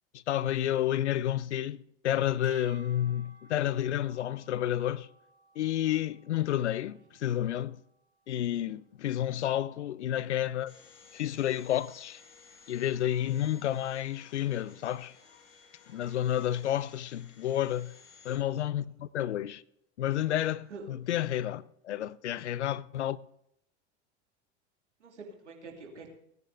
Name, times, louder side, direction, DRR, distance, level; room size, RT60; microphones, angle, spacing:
voice 1, 0.1-5.1 5.6-7.8 8.3-10.7 11.1-12.2 12.7-15.1 15.9-17.9 18.2-19.6 20.0-23.2, left 11 dB, 80° left, 0.7 m, -30 dB
sound 1, 2.4-8.8, right 2 dB, 70° right, 2.7 m, -59 dB
Domestic sounds home sounds, 10.7-18.4, left 5 dB, 50° left, 5.2 m, -57 dB
voice 2, 20.2-20.9 25.0-26.1, right 3 dB, 85° right, 2.9 m, -47 dB
18.0 x 9.6 x 3.6 m
hypercardioid pair, 80°, 34 cm